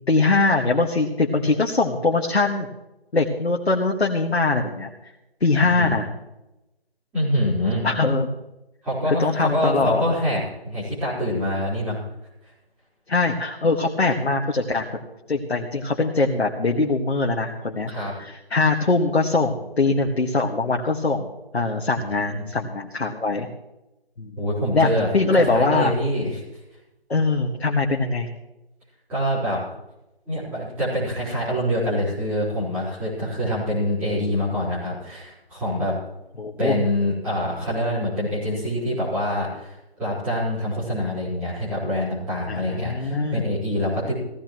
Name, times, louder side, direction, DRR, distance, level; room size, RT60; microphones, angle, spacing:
voice 1, 0.1-2.7 3.1-4.9 5.4-6.1 7.8-8.3 9.1-10.0 13.1-15.0 15.3-17.9 18.2-21.3 21.5-23.5 24.2-24.3 24.7-24.9 25.1-25.9 27.1-28.3 36.4-36.8 42.5-43.5, left 3 dB, 80° left, 1 dB, 1.9 m, -22 dB
voice 2, 7.1-7.9 8.8-12.0 17.9-18.1 22.1-22.5 24.4-25.1 25.3-26.4 29.1-29.6 30.3-35.9 36.6-44.2, equal, 5° right, -12 dB, 4.5 m, -25 dB
17.5 x 16.0 x 3.1 m, 0.95 s
figure-of-eight pair, 170°, 31 cm